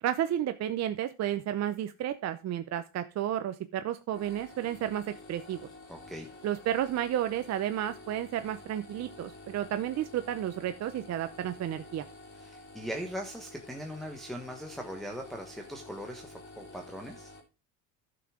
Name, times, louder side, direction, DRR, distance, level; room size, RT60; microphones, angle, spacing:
voice 1, 0.0-5.6 6.4-12.0, right 11 dB, 45° right, 9 dB, 0.7 m, -32 dB
sound 1, 4.1-17.4, left 2 dB, 35° left, 3.4 m, -50 dB
voice 2, 5.9-6.3 12.4-17.3, equal, ahead, 1 dB, 1.2 m, -40 dB
11.0 x 6.0 x 4.9 m, 0.30 s
cardioid pair, 120°, 36 cm